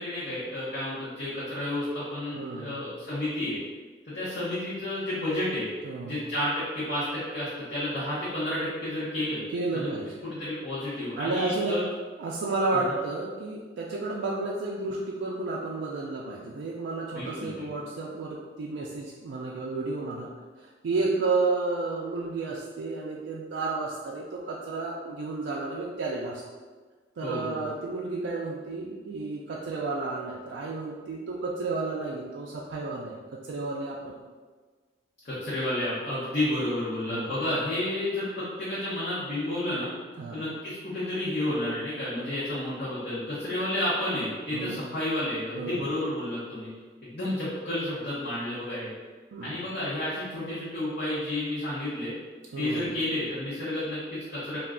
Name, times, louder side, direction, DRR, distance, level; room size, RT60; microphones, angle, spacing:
voice 1, 0.0-3.6 4.1-5.7 6.0-9.4 9.7-9.9 10.2-11.8 17.1-17.8 27.2-27.7 35.2-39.9 40.3-46.7 47.0-48.9 49.4-52.1 52.6-54.6, left 1 dB, 55° left, -11 dB, 0.7 m, -31 dB
voice 2, 2.3-2.9 5.8-6.2 9.5-10.1 11.2-11.8 12.2-20.3 20.6-26.4 27.2-34.2 37.1-37.3 40.2-40.4 44.5-44.8 45.6-45.8 49.3-49.6 52.5-52.9, right 3 dB, 90° right, -3 dB, 0.3 m, -32 dB
2.3 x 2.2 x 3.6 m, 1.4 s
head